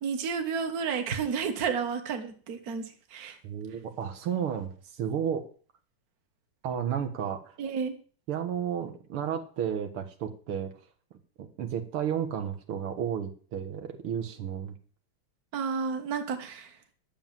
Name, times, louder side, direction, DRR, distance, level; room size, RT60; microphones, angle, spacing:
voice 1, 0.0-3.4 7.6-8.0 15.5-16.8, right 6 dB, 45° right, 7 dB, 1.8 m, -31 dB
voice 2, 3.4-5.4 6.6-7.6 8.3-10.7 11.4-14.7, right 8 dB, 90° right, 5 dB, 2.4 m, -32 dB
11.0 x 7.3 x 7.5 m, 0.42 s
omnidirectional pair, 2.3 m